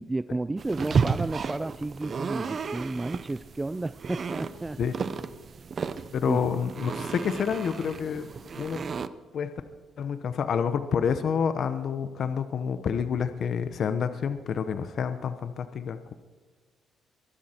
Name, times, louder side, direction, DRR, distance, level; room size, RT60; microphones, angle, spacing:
voice 1, 0.0-5.0 6.3-6.4, right 2 dB, 15° right, 14 dB, 0.4 m, -32 dB
sound 1, 0.6-9.1, right 5 dB, 45° right, 0.8 m, -33 dB
voice 2, 6.1-8.3 8.6-8.8 9.3-9.5 10.0-16.1, left 7 dB, 60° left, 10 dB, 1.0 m, -28 dB
23.0 x 12.5 x 4.5 m, 1.5 s
cardioid pair, 90°, 0 cm